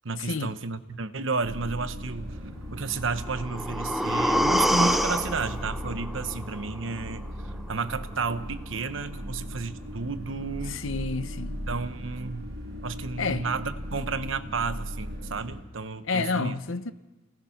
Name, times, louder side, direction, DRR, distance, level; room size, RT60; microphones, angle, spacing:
voice 1, 0.0-2.4 2.7-10.8 11.7-12.5 12.8-16.6, right 4 dB, 70° right, 1.0 m, -32 dB
sound 1, 1.4-15.6, equal, 50° right, 5.1 m, -37 dB
sound 2, 3.2-7.2 7.5-7.6, equal, ahead, 0.7 m, -27 dB
voice 2, 10.7-11.6 13.2-13.4 16.1-16.9, left 4 dB, 75° left, 0.9 m, -29 dB
28.5 x 18.5 x 5.8 m
head